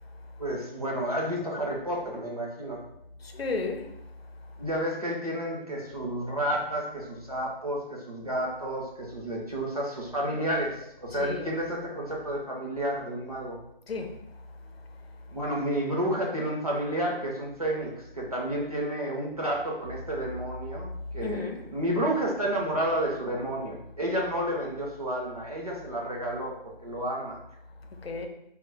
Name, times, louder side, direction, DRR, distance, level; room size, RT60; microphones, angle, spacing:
voice 1, 0.4-2.8 4.6-13.6 15.3-27.4, right 1 dB, 40° right, 0.5 m, -31 dB
voice 2, 3.2-3.9 11.2-11.5 13.9-14.2 21.2-21.6 28.0-28.3, left 4 dB, 90° left, 0.6 m, -33 dB
2.1 x 2.1 x 3.6 m
figure-of-eight pair, 180°, 29 cm